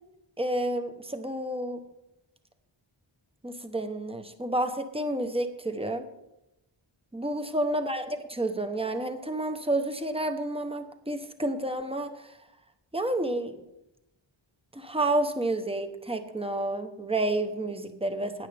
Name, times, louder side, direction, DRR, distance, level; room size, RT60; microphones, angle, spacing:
voice 1, 0.4-1.8 3.4-6.0 7.1-12.3 12.9-13.6 14.7-18.5, right 1 dB, 10° right, 7 dB, 1.0 m, -30 dB
16.0 x 9.9 x 3.5 m, 0.89 s
wide cardioid pair, 110°, 47 cm